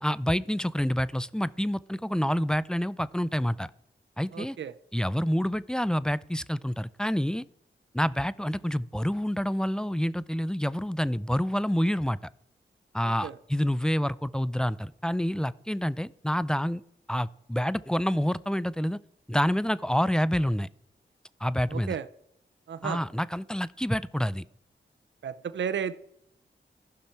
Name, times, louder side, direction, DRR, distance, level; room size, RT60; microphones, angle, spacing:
voice 1, 0.0-3.7 4.2-4.6 4.9-7.5 7.9-12.2 12.9-16.8 17.1-19.0 19.3-20.7 21.4-22.0 22.8-24.4, equal, 5° left, 19 dB, 0.3 m, -28 dB
voice 2, 4.3-4.7 13.0-13.4 21.7-22.1 22.7-23.0 25.2-26.0, right 7 dB, 70° right, 13 dB, 0.5 m, -33 dB
14.5 x 5.8 x 4.3 m, 0.75 s
cardioid pair, 55°, 20 cm